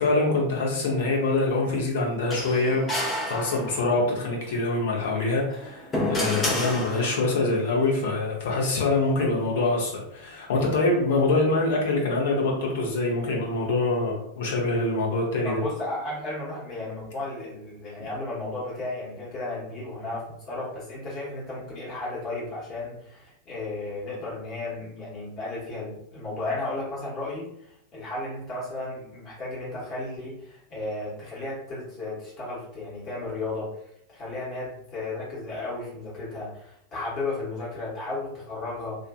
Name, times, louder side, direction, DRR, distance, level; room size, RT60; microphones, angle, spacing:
voice 1, 0.0-2.9 3.3-15.6, left 2 dB, 55° left, -2 dB, 0.8 m, -25 dB
sound 1, 2.3-4.0 5.4-7.4, left 1 dB, 20° left, 0.7 m, -29 dB
voice 2, 15.4-33.7 34.1-39.0, left 2 dB, 35° left, -7 dB, 1.0 m, -34 dB
2.4 x 2.4 x 2.3 m, 0.76 s
figure-of-eight pair, 90°, 0 cm